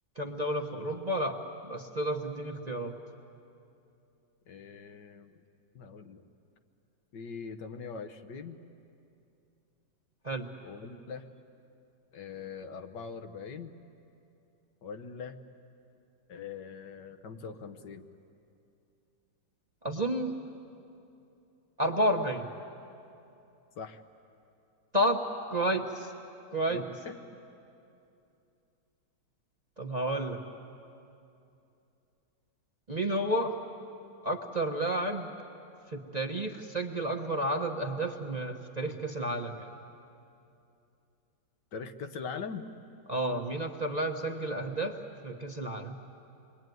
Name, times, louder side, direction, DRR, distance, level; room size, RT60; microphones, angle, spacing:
voice 1, 0.2-2.9 10.2-10.5 19.8-20.3 21.8-22.5 24.9-25.2 25.5-26.1 26.5-26.8 29.8-30.4 32.9-33.6 34.2-35.3 35.9-39.7 43.1-46.0, right 1 dB, 25° right, 2 dB, 1.0 m, -31 dB
voice 2, 4.5-5.4 5.7-6.2 7.1-8.6 10.6-11.3 12.1-13.7 14.8-15.4 16.3-18.1 23.8-24.0 26.7-27.2 41.7-42.7, left 5 dB, 70° left, 7 dB, 1.7 m, -42 dB
28.0 x 22.5 x 9.3 m, 2.7 s
omnidirectional pair, 2.0 m